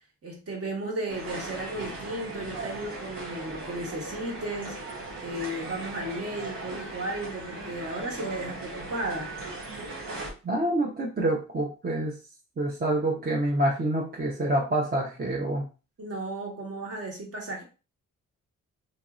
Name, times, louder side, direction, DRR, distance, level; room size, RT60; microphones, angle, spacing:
voice 1, 0.2-4.8 5.2-9.3 16.0-17.6, right 1 dB, 45° right, -1 dB, 1.2 m, -34 dB
sound 1, 1.1-10.3, right 2 dB, 80° right, 1.1 m, -38 dB
voice 2, 10.4-12.1 12.6-15.6, right 1 dB, 30° right, -2 dB, 0.8 m, -27 dB
3.1 x 2.6 x 2.4 m, 0.33 s
cardioid pair, 65°, 33 cm